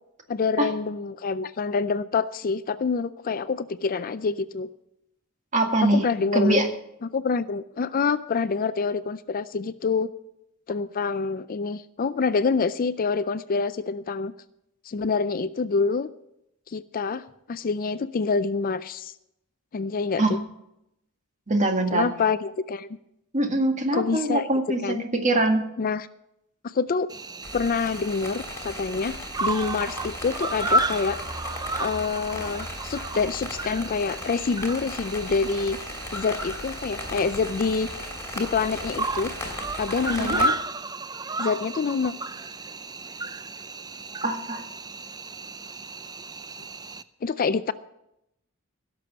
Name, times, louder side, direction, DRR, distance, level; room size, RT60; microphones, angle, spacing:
voice 1, 0.3-4.7 5.8-6.7 7.0-10.1 10.7-14.3 14.9-16.1 16.7-19.1 19.7-20.4 21.9-22.9 23.9-24.5 24.8-25.0 25.8-26.1 26.6-27.1 27.5-31.2 31.8-35.8 36.1-37.9 38.3-39.3 39.8-40.6 41.4-42.1 47.2-47.7, left 4 dB, 40° left, 14 dB, 0.4 m, -26 dB
voice 2, 5.5-6.0 6.3-6.7 20.2-20.3 21.5-22.1 23.3-24.8 25.1-25.7 40.2-40.4 44.2-44.6, right 2 dB, 35° right, 3 dB, 1.9 m, -23 dB
Cricket, 27.1-47.0, right 2 dB, 20° right, 0.4 m, -33 dB
sound 1, 27.4-40.5, left 2 dB, 15° left, 2.9 m, -37 dB
17.0 x 6.9 x 6.9 m, 0.83 s
head